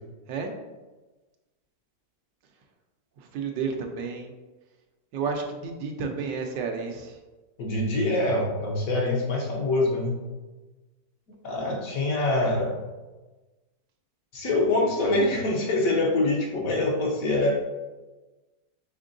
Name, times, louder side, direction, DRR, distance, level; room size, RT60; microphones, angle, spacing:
voice 1, 3.2-4.3 5.1-7.2, right 5 dB, 90° right, 4 dB, 1.3 m, -31 dB
voice 2, 7.6-10.2 11.4-12.8 14.3-17.5, left 2 dB, 60° left, -2 dB, 1.1 m, -25 dB
5.1 x 3.6 x 2.6 m, 1.2 s
omnidirectional pair, 1.9 m